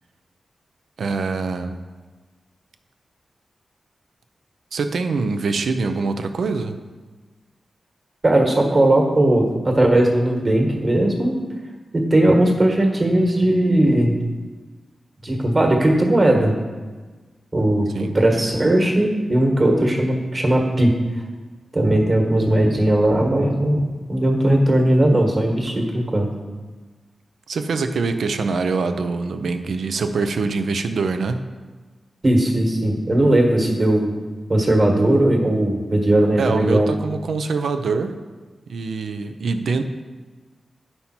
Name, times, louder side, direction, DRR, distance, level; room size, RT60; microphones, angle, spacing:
voice 1, 1.0-1.8 4.7-6.8 17.9-18.2 27.5-31.4 36.4-38.1 38.7-39.8, right 4 dB, 85° right, 8 dB, 0.6 m, -24 dB
voice 2, 8.2-11.3 11.9-14.1 15.2-16.5 17.5-20.9 21.7-26.3 32.2-34.1 34.5-36.9, right 1 dB, 35° right, 1 dB, 1.5 m, -18 dB
9.7 x 5.5 x 4.4 m, 1.3 s
wide cardioid pair, 115°, 0 cm